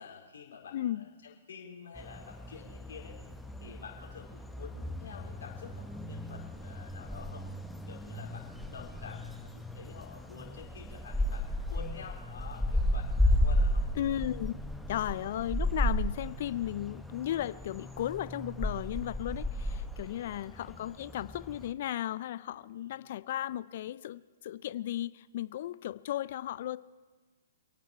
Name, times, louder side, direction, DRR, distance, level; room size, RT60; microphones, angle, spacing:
voice 1, 0.0-3.2 3.6-7.5 7.9-13.8 20.0-20.3 22.7-23.1, left 6 dB, 70° left, -2 dB, 4.3 m, -49 dB
voice 2, 0.7-1.0 14.0-26.8, left 12 dB, 55° left, 17 dB, 0.5 m, -35 dB
sound 1, 1.9-21.7, left 1 dB, ahead, 0.9 m, -34 dB
27.5 x 9.2 x 4.4 m, 1.3 s
hypercardioid pair, 125°, 0 cm